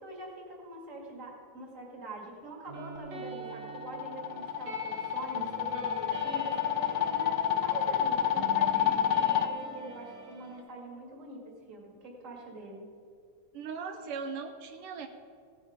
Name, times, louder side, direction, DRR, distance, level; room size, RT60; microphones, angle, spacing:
voice 1, 0.0-12.9, right 2 dB, 30° right, 0 dB, 2.1 m, -44 dB
sound 1, 2.7-10.6, right 3 dB, 65° right, 2.5 m, -44 dB
sound 2, 3.3-9.5, left 10 dB, 90° left, 2.1 m, -29 dB
voice 2, 13.5-15.1, right 5 dB, 90° right, 6 dB, 1.2 m, -38 dB
16.5 x 7.5 x 5.1 m, 2.3 s
omnidirectional pair, 3.4 m